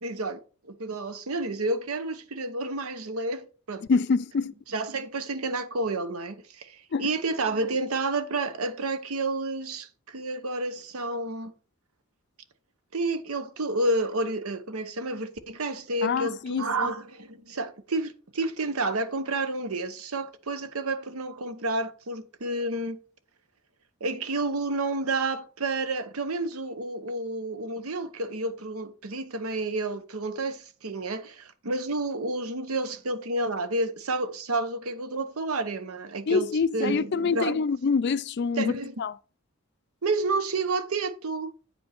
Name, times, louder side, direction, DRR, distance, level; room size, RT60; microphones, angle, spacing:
voice 1, 0.0-3.8 4.7-11.5 12.9-23.0 24.0-37.7 38.6-38.9 40.0-41.5, right 2 dB, 80° right, 1.0 m, -30 dB
voice 2, 3.9-4.5 6.9-7.1 16.0-16.7 36.3-38.7 39.0-39.1, left 5 dB, 50° left, 0.4 m, -25 dB
8.8 x 5.2 x 4.3 m
head